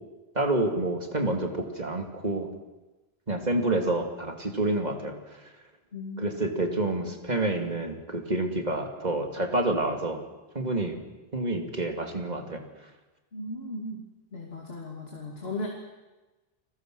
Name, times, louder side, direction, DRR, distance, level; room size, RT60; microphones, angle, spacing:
voice 1, 0.3-2.5 3.3-5.1 6.2-10.2 10.5-11.0 11.3-12.6, right 2 dB, 40° right, 3 dB, 2.6 m, -28 dB
voice 2, 5.9-6.3 13.3-14.0 14.3-15.7, left 2 dB, 65° left, -1 dB, 3.0 m, -36 dB
30.0 x 20.5 x 6.3 m, 1.1 s
omnidirectional pair, 1.1 m